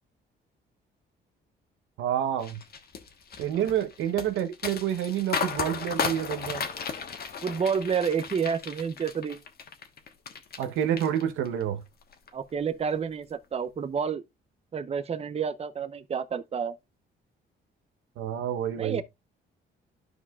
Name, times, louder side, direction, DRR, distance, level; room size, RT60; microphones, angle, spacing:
voice 1, 2.0-2.6 3.4-6.7 10.6-11.8 18.2-19.0, right 10 dB, 90° right, 0.9 m, -28 dB
sound 1, 2.4-10.7 11.0-11.6 12.0-12.3, left 6 dB, 50° left, 1.3 m, -35 dB
voice 2, 7.4-9.4 12.3-14.2 14.7-16.8 18.8-19.0, right 6 dB, 30° right, 0.6 m, -29 dB
12.0 x 4.8 x 2.3 m
cardioid pair, 90°, 20 cm